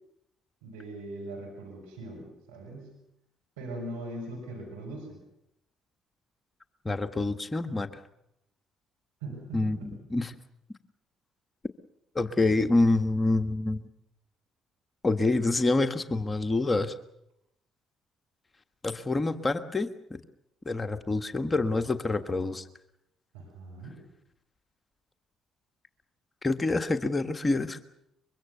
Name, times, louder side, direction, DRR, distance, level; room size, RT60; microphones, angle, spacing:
voice 1, 0.6-2.9 3.6-5.2 9.2-9.9 23.3-24.0, right 2 dB, 90° right, 0 dB, 5.7 m, -40 dB
voice 2, 6.8-8.0 9.5-10.3 12.1-13.8 15.0-16.9 18.8-20.2 20.6-22.7 26.4-27.8, left 2 dB, 25° left, 8 dB, 1.5 m, -27 dB
24.5 x 23.0 x 6.9 m, 0.81 s
hypercardioid pair, 55°, 0 cm